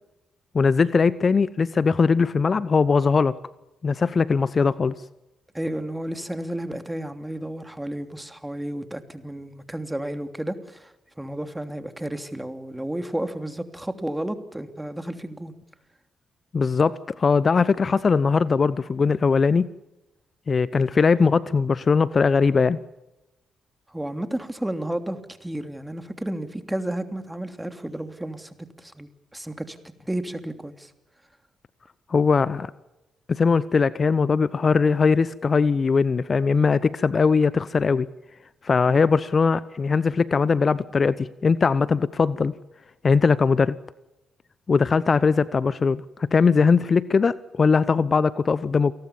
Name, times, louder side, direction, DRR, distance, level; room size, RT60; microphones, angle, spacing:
voice 1, 0.5-3.4 3.8-4.9 16.5-19.7 20.5-22.8 32.1-32.7 33.3-38.1 38.6-42.5 43.0-43.8 44.7-48.9, left 5 dB, 45° left, 18 dB, 0.9 m, -20 dB
voice 2, 5.5-15.5 23.9-29.8 30.1-30.9, right 1 dB, 10° right, 8 dB, 3.0 m, -32 dB
28.5 x 20.0 x 7.2 m, 0.99 s
hypercardioid pair, 40°, 0 cm